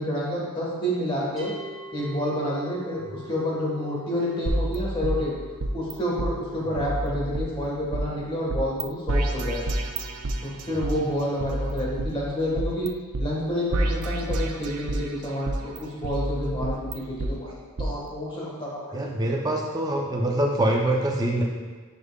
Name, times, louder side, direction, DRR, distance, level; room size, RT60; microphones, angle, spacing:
voice 1, 0.0-1.5 1.9-5.3 5.7-9.7 10.4-12.9 13.2-19.1, equal, 20° left, -4 dB, 1.6 m, -29 dB
sound 1, 1.4-12.5, equal, ahead, 2.1 m, -47 dB
sound 2, 4.5-5.9 6.2-6.3 6.8-8.0 8.5-8.8 9.1-10.9 11.4-12.9 13.1-13.2 13.7-15.1 15.5-17.3 17.8-17.9, right 1 dB, 80° right, 0.6 m, -28 dB
voice 2, 18.9-21.4, right 1 dB, 15° right, 0 dB, 0.7 m, -24 dB
10.0 x 5.4 x 2.4 m, 1.4 s
head